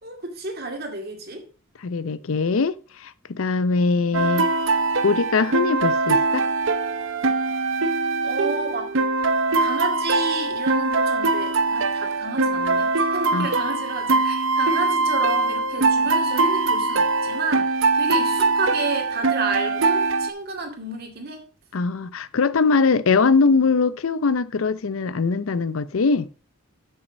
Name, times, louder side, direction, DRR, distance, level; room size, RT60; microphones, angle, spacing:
voice 1, 0.0-1.4 8.2-8.9 9.6-21.5, right 3 dB, 45° right, 2.2 m, -31 dB
voice 2, 1.8-2.7 3.0-4.5 5.0-6.5 13.3-13.5 21.7-26.3, left 4 dB, 70° left, 0.5 m, -21 dB
sound 1, 4.1-20.3, right 3 dB, 60° right, 0.7 m, -22 dB
8.0 x 6.5 x 5.1 m
head